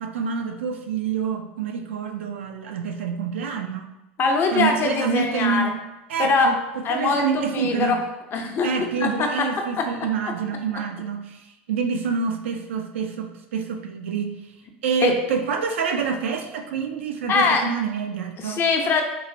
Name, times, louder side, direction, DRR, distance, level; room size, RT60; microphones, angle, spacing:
voice 1, 0.0-3.9 4.5-5.8 6.1-6.6 6.9-8.0 8.6-11.4 11.7-14.3 14.8-18.6, right 6 dB, 80° right, 4 dB, 0.3 m, -27 dB
voice 2, 4.2-5.7 6.2-6.5 6.8-8.0 8.3-8.7 9.0-9.5 9.8-9.9 15.0-15.1 17.3-17.6 18.4-19.0, left 4 dB, 35° left, 3 dB, 0.5 m, -22 dB
3.0 x 2.1 x 2.6 m, 0.97 s
hypercardioid pair, 90°, 6 cm